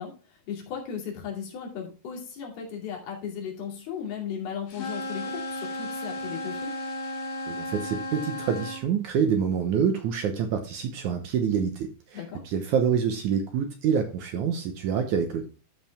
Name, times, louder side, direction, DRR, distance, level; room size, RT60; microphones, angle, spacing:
voice 1, 0.0-6.7 12.1-12.4, left 7 dB, 80° left, -1 dB, 4.4 m, -36 dB
sound 1, 4.7-8.8, left 1 dB, 45° left, 2.2 m, -34 dB
voice 2, 7.5-15.5, right 7 dB, 70° right, 6 dB, 2.0 m, -27 dB
13.0 x 4.9 x 3.4 m, 0.33 s
omnidirectional pair, 4.4 m